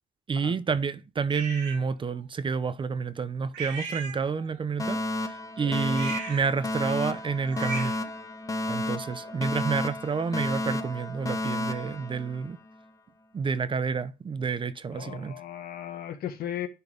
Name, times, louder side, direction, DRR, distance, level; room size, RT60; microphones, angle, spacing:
voice 1, 0.3-7.9 8.7-12.6 13.3-15.4, right 5 dB, 30° right, 0.7 m, -29 dB
sound 1, 1.3-1.8 3.5-4.6 5.9-8.1, right 4 dB, 85° right, 3.2 m, -38 dB
Alarm, 4.8-12.8, left 2 dB, 20° left, 0.8 m, -32 dB
voice 2, 14.9-16.7, left 10 dB, 65° left, 1.5 m, -37 dB
10.5 x 4.5 x 3.5 m
cardioid pair, 110°, 17 cm